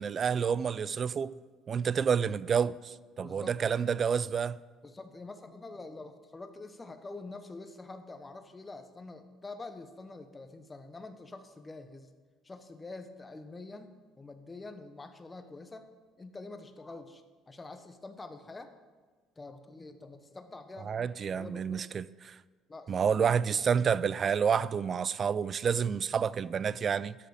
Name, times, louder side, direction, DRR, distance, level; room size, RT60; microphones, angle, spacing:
voice 1, 0.0-1.4 1.7-4.6 20.9-22.4 22.9-27.2, right 7 dB, 40° right, 0.3 m, -29 dB
voice 2, 3.2-3.5 4.8-12.1 12.4-15.9 16.2-18.7 19.4-21.9 22.7-23.3 23.6-23.7, left 3 dB, 20° left, 1.0 m, -46 dB
13.0 x 6.7 x 4.9 m
cardioid pair, 105°, 0 cm